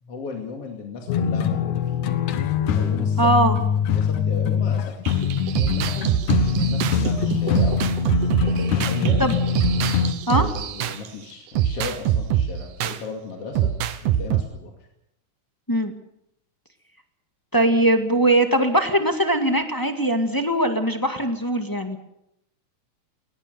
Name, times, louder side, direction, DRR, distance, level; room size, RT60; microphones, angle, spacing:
voice 1, 0.0-2.0 2.7-3.3 3.9-4.9 5.5-6.1 6.6-7.9 8.4-9.3 10.3-13.7 14.0-14.7, left 4 dB, 50° left, 2 dB, 3.2 m, -35 dB
sound 1, 1.1-10.1, left 7 dB, 75° left, 2.7 m, -23 dB
voice 2, 3.2-3.6 9.2-9.4 10.3-10.5 15.7-16.0 17.5-22.0, right 1 dB, 10° left, 5 dB, 1.1 m, -21 dB
sound 2, 5.1-11.1 11.6-13.0 13.6-14.4, right 10 dB, 85° right, 2.8 m, -24 dB
20.5 x 20.5 x 6.9 m, 0.81 s
omnidirectional pair, 3.6 m